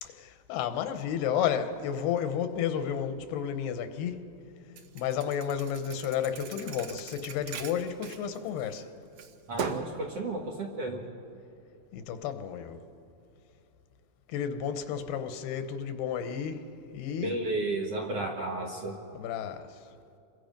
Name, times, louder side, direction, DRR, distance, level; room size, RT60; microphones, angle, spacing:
voice 1, 0.0-4.3 5.0-8.9 11.9-12.8 14.3-16.6 16.9-17.4 19.1-19.7, left 8 dB, 85° left, 3.0 m, -32 dB
Thump thud, 4.8-8.8 9.2-10.0, right 7 dB, 90° right, 1.4 m, -40 dB
voice 2, 9.5-11.0 17.2-19.0, right 2 dB, 60° right, 1.7 m, -33 dB
28.5 x 23.0 x 5.3 m
omnidirectional pair, 4.5 m